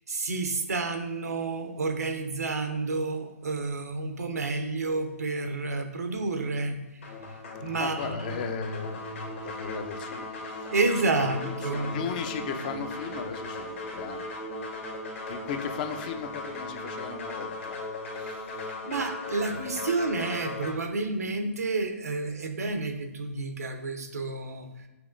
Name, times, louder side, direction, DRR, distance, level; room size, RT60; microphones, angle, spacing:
voice 1, 0.1-7.0 7.6-8.4 10.7-12.0 18.8-24.7, right 3 dB, 85° right, 6 dB, 0.7 m, -30 dB
sound 1, 7.0-20.7, left 2 dB, 55° left, 1.2 m, -37 dB
voice 2, 7.8-10.7 11.3-14.3 15.3-17.8 18.1-18.7 19.3-19.6, left 6 dB, 35° left, 7 dB, 0.5 m, -37 dB
6.1 x 3.0 x 2.5 m, 1.0 s
hypercardioid pair, 140°, 8 cm